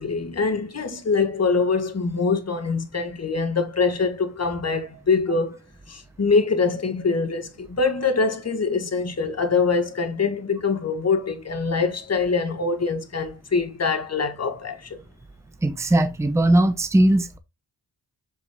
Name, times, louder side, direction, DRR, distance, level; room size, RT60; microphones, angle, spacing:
voice 1, 0.0-5.6 5.9-15.0, left 4 dB, 40° left, 1.5 m, -24 dB
voice 2, 15.6-17.4, right 1 dB, 5° right, 0.8 m, -19 dB
7.3 x 3.9 x 3.5 m
cardioid pair, 70°, 41 cm